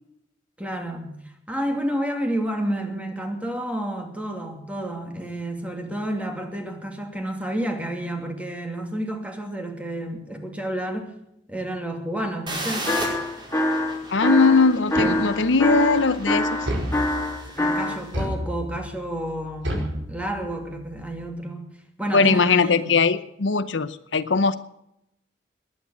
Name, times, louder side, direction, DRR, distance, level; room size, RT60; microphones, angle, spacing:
voice 1, 0.6-1.1 1.5-11.1 11.5-12.9 17.5-21.7 22.0-22.9, right 1 dB, 10° right, 3 dB, 2.5 m, -30 dB
sound 1, 12.5-18.1, right 1 dB, 25° right, 5.1 m, -36 dB
sound 2, 12.9-18.0, left 1 dB, 15° left, 1.9 m, -24 dB
voice 2, 14.1-16.6 22.1-24.5, left 4 dB, 75° left, 13 dB, 0.8 m, -20 dB
sound 3, 15.0-15.6 16.7-17.5 18.1-18.9 19.6-20.7, equal, 80° right, 4.9 m, -30 dB
20.0 x 9.7 x 6.3 m, 0.82 s
head